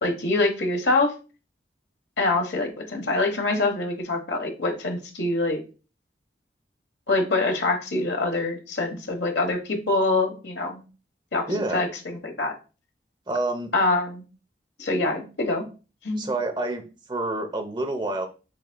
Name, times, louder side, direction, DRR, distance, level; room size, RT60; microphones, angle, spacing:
voice 1, 0.0-1.1 2.2-5.6 7.1-10.8 11.3-11.5 11.7-12.5 13.7-14.2 14.8-15.6 16.0-16.3, left 2 dB, 80° left, 3 dB, 1.2 m, -25 dB
voice 2, 11.5-11.8 13.3-13.7 16.1-16.8 17.1-18.3, right 2 dB, 25° right, 5 dB, 0.7 m, -28 dB
6.3 x 3.7 x 2.2 m, 0.33 s
head